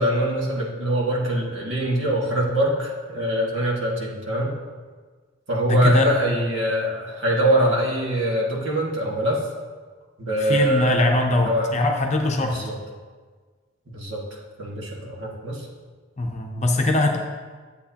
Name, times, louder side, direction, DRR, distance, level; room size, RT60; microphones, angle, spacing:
voice 1, 0.0-4.5 5.5-9.4 10.2-11.7 12.4-12.7 13.9-14.2 14.6-15.7, right 1 dB, 70° right, -3 dB, 1.9 m, -23 dB
voice 2, 5.7-6.1 10.4-12.5 16.2-17.2, left 2 dB, 35° left, 2 dB, 0.7 m, -21 dB
11.0 x 8.1 x 2.9 m, 1.5 s
head